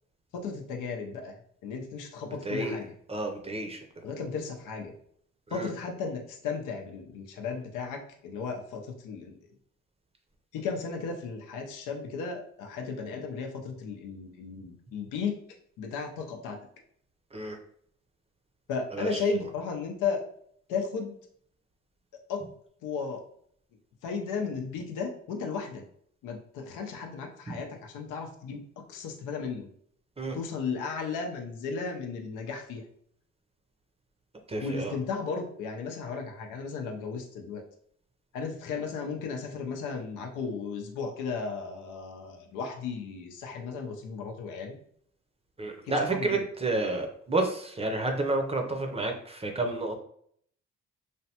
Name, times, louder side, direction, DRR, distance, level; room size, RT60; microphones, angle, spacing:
voice 1, 0.3-1.4 1.6-2.9 4.0-4.9 5.5-9.5 10.5-15.4 15.8-16.6 18.7-20.2 20.7-21.2 22.3-22.5 22.8-23.2 24.0-25.8 26.2-28.6 28.9-29.7 30.3-32.9 34.6-37.6 38.3-44.8 45.8-46.5, left 5 dB, 90° left, 3 dB, 0.6 m, -35 dB
voice 2, 3.1-3.8 5.5-5.7 17.3-17.6 19.0-19.1 30.2-30.4 34.5-34.9 45.6-50.0, right 2 dB, 20° right, 3 dB, 0.6 m, -30 dB
3.2 x 2.1 x 2.8 m, 0.65 s
cardioid pair, 90°, 30 cm